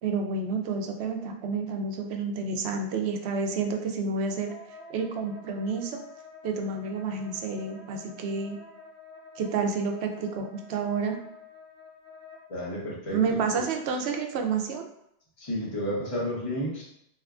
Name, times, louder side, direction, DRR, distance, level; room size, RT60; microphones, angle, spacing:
voice 1, 0.0-4.5 4.9-6.0 6.4-8.6 9.4-11.2 13.1-14.8, right 4 dB, 90° right, 4 dB, 0.8 m, -29 dB
Wind instrument woodwind instrument, 4.5-12.7, left 3 dB, 80° left, 1.3 m, -48 dB
voice 2, 12.5-13.6 15.4-16.8, equal, 35° left, -5 dB, 1.0 m, -32 dB
3.4 x 2.9 x 2.4 m, 0.77 s
omnidirectional pair, 1.1 m